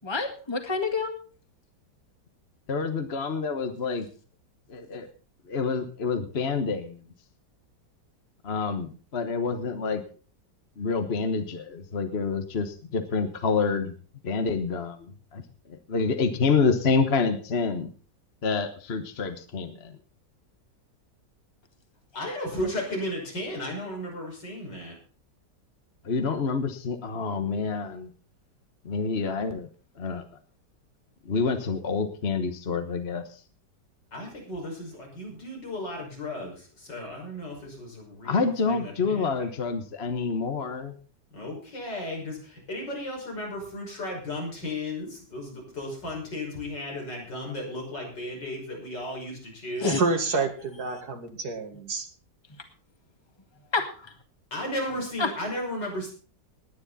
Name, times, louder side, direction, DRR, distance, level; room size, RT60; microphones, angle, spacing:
voice 1, 0.0-1.2 22.1-22.4 22.6-22.7 49.8-50.0 53.7-54.1 55.2-55.3, left 4 dB, 15° left, 6 dB, 1.8 m, -28 dB
voice 2, 2.7-4.1 4.7-5.1 5.5-7.0 8.4-10.0 10.8-13.9 14.2-15.4 15.7-17.9 18.4-19.9 26.0-28.1 28.8-29.7 30.0-30.2 31.2-33.4 38.2-40.9, left 4 dB, 40° left, 7 dB, 1.4 m, -27 dB
voice 3, 22.1-25.0 34.1-39.3 41.3-49.9 54.5-56.1, left 1 dB, 85° left, 0 dB, 6.4 m, -35 dB
voice 4, 49.9-52.1, right 3 dB, 65° right, 6 dB, 2.4 m, -28 dB
19.5 x 9.9 x 4.2 m, 0.39 s
omnidirectional pair, 1.9 m